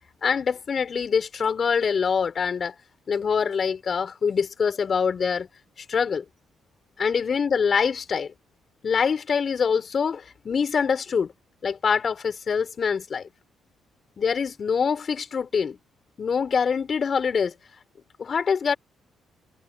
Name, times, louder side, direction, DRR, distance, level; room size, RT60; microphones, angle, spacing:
voice 1, 0.2-2.8 3.1-5.5 5.9-6.2 7.0-8.3 8.8-11.3 11.6-13.3 14.2-15.8 16.2-17.5 18.2-18.8, left 6 dB, 45° left, 5.0 m, -24 dB
cardioid pair, 90°, 0 cm